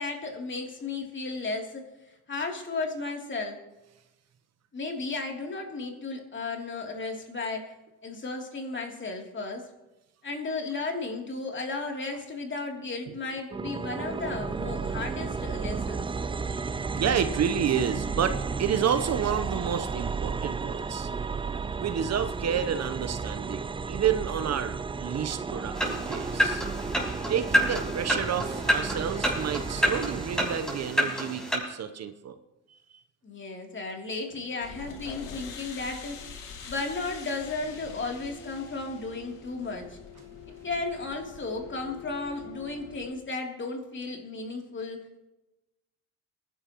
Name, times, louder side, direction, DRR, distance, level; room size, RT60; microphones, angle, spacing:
voice 1, 0.0-1.8 2.3-3.6 4.7-7.7 8.0-9.7 10.2-16.1 33.2-36.2 36.6-40.0 40.6-45.1, left 3 dB, 35° left, 1 dB, 3.2 m, -34 dB
ab darksky atmos, 13.5-30.9, right 5 dB, 15° right, 0.4 m, -33 dB
voice 2, 16.5-21.1 21.8-26.6 27.3-32.4 32.9-33.0, right 8 dB, 50° right, 10 dB, 0.9 m, -30 dB
sound 1, 25.8-31.6, equal, ahead, 6.0 m, -28 dB
sound 2, 34.6-43.1, left 6 dB, 65° left, 2.4 m, -44 dB
22.5 x 11.0 x 3.1 m, 0.99 s
supercardioid pair, 70°, 35 cm